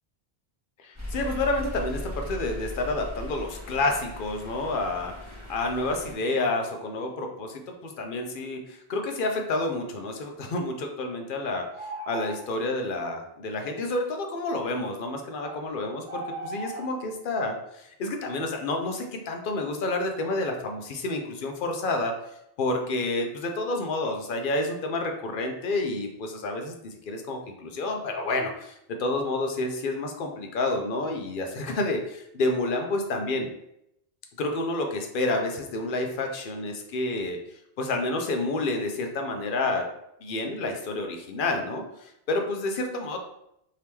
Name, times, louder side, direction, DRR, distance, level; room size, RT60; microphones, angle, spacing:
voice 1, 0.8-5.1 5.5-11.6 12.1-22.1 22.6-28.7 29.0-33.5 34.4-37.4 37.8-39.8 40.2-43.2, left 2 dB, 60° left, 4 dB, 0.7 m, -29 dB
sound 1, 0.9-6.1, left 1 dB, 15° right, 1.1 m, -38 dB
sound 2, 11.7-12.6 15.4-15.6 16.1-16.9, right 1 dB, 45° right, 0.5 m, -37 dB
3.4 x 2.8 x 2.9 m, 0.79 s
omnidirectional pair, 1.0 m